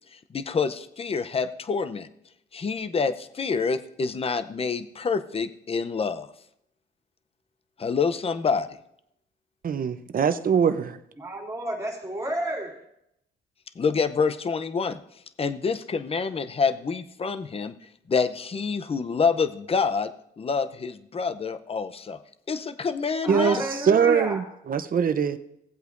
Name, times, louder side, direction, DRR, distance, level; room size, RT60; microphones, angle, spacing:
voice 1, 0.3-2.1 2.5-6.3 7.8-8.7 13.8-15.0 15.4-17.8 18.1-20.1 20.4-22.2 22.5-23.6, left 5 dB, 30° left, 0.6 m, -27 dB
voice 2, 9.6-11.0 23.3-23.6 23.9-25.4, right 7 dB, 45° right, 0.7 m, -22 dB
voice 3, 11.2-12.8 23.2-24.4, right 1 dB, 15° right, 2.8 m, -31 dB
17.0 x 8.1 x 2.6 m
cardioid pair, 90°, 20 cm